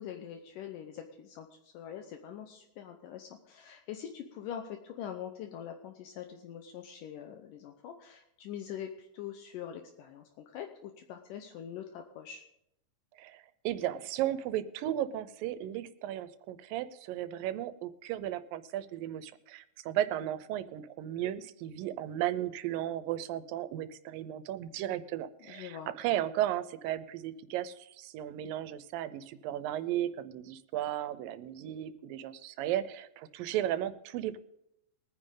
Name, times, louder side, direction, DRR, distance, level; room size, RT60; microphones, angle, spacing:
voice 1, 0.0-12.4 25.5-25.9, left 9 dB, 75° left, 5 dB, 2.4 m, -43 dB
voice 2, 13.2-34.4, right 12 dB, 85° right, 14 dB, 2.4 m, -35 dB
21.5 x 9.9 x 3.8 m, 0.79 s
omnidirectional pair, 4.0 m